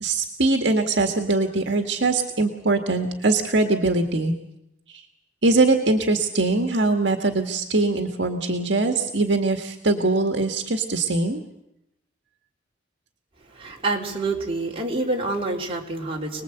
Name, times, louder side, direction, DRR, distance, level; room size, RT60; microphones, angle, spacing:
voice 1, 0.0-4.3 4.9-5.0 5.4-11.4, right 2 dB, 65° right, 5 dB, 1.8 m, -22 dB
voice 2, 13.5-16.4, right 2 dB, 30° right, -1 dB, 3.7 m, -27 dB
27.0 x 20.0 x 8.1 m, 0.84 s
head